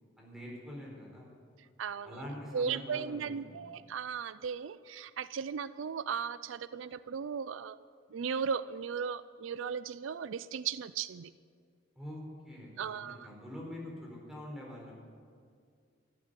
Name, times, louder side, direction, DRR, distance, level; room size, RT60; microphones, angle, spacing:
voice 1, 0.2-1.3 2.0-3.5 12.0-12.2 12.4-14.9, left 1 dB, 5° right, -3 dB, 4.4 m, -45 dB
voice 2, 1.8-2.2 2.5-7.8 8.1-11.3 12.8-13.3, right 6 dB, 85° right, 16 dB, 0.4 m, -36 dB
14.0 x 12.5 x 8.2 m, 2.2 s
head